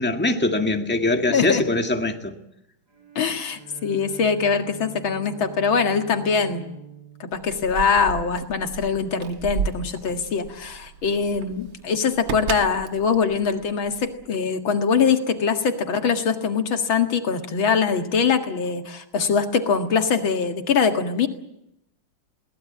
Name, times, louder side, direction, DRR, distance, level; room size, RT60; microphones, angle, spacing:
voice 1, 0.0-2.3, left 2 dB, 5° left, 1.8 m, -22 dB
voice 2, 1.3-1.6 3.2-6.6 7.2-21.3, left 6 dB, 90° left, 2.7 m, -23 dB
Bowed string instrument, 2.9-8.4, right 4 dB, 55° right, 8.4 m, -44 dB
Keys jangling, 7.3-14.3, right 7 dB, 80° right, 2.1 m, -33 dB
22.5 x 18.5 x 8.5 m
omnidirectional pair, 2.1 m